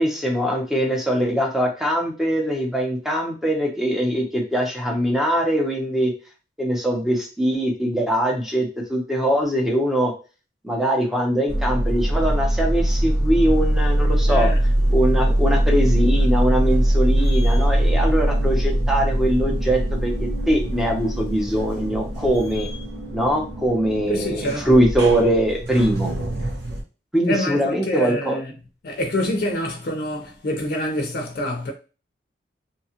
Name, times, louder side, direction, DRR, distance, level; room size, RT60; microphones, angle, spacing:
voice 1, 0.0-6.1 6.6-10.1 10.6-14.5 14.9-22.7 23.1-26.1 27.1-28.4, equal, ahead, 0.7 m, -22 dB
sound 1, 11.5-26.8, right 1 dB, 65° right, 0.8 m, -22 dB
voice 2, 14.3-14.6 24.1-24.7 27.3-28.5 28.8-31.7, left 1 dB, 55° left, 0.5 m, -26 dB
2.8 x 2.3 x 2.8 m
head